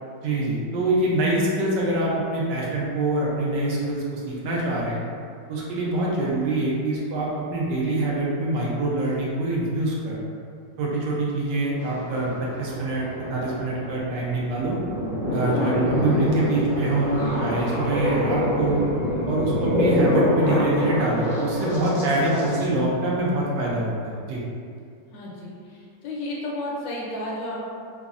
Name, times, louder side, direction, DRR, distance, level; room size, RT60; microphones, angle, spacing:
voice 1, 0.2-5.0 5.5-10.2 10.8-13.0 13.3-14.8 15.3-18.8 19.3-24.4, right 2 dB, 75° right, -5 dB, 1.2 m, -25 dB
sound 1, 11.8-22.6, left 1 dB, 45° left, 0.6 m, -26 dB
voice 2, 25.1-27.6, left 1 dB, 80° left, -4 dB, 1.3 m, -32 dB
3.5 x 2.0 x 2.4 m, 2.3 s
omnidirectional pair, 2.0 m